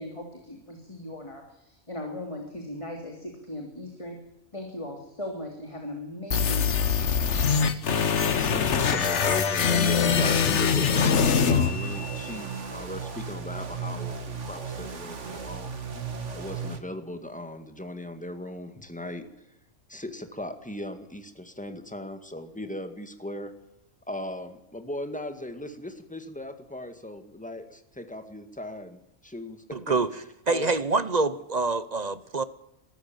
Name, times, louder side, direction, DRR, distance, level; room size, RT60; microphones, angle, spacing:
voice 1, 0.0-4.2 4.5-6.8, left 1 dB, 20° left, 2 dB, 3.1 m, -38 dB
sound 1, 6.3-12.3, left 6 dB, 60° left, 1.4 m, -23 dB
voice 2, 8.2-15.7 16.3-19.5 19.9-23.5 24.1-29.8 30.5-30.7, left 1 dB, 5° left, 8 dB, 1.9 m, -38 dB
sound 2, 11.3-16.8, right 5 dB, 60° right, 2.0 m, -35 dB
voice 3, 29.7-30.1 30.5-32.4, right 3 dB, 35° right, 14 dB, 0.9 m, -26 dB
23.0 x 13.5 x 9.0 m, 0.83 s
omnidirectional pair, 1.4 m